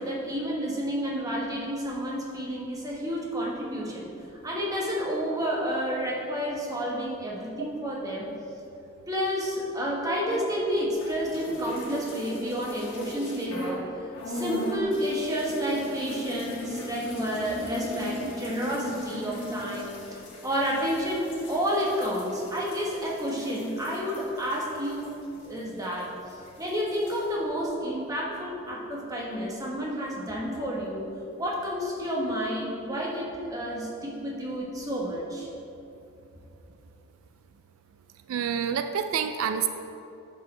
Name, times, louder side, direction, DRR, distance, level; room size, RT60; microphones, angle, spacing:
voice 1, 0.0-4.0 4.4-8.3 9.1-25.0 25.4-26.1 26.6-31.1 31.4-35.5, equal, 15° right, -4 dB, 1.1 m, -30 dB
sound 1, 10.9-13.8 14.1-26.0 26.3-27.2, left 1 dB, 55° left, 1.6 m, -39 dB
voice 2, 38.3-39.7, right 7 dB, 80° right, 9 dB, 0.3 m, -28 dB
9.9 x 6.3 x 3.3 m, 2.8 s
head